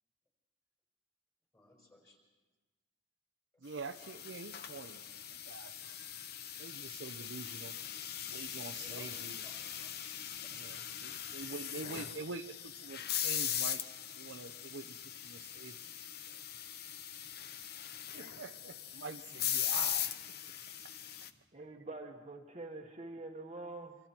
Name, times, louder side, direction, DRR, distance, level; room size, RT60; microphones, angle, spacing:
voice 1, 1.5-2.2 3.5-3.6 8.7-9.9 10.4-10.5, left 1 dB, 20° left, -1 dB, 5.0 m, -60 dB
voice 2, 3.6-5.8 6.6-7.7 8.3-9.4 10.5-13.8 14.1-15.8 16.3-16.4 18.1-20.1, right 4 dB, 75° right, 8 dB, 0.7 m, -46 dB
sound 1, 3.8-21.3, left 10 dB, 55° left, 0.9 m, -40 dB
voice 3, 21.5-24.0, right 2 dB, 35° right, 2 dB, 1.3 m, -45 dB
26.0 x 25.0 x 4.4 m, 1.2 s
head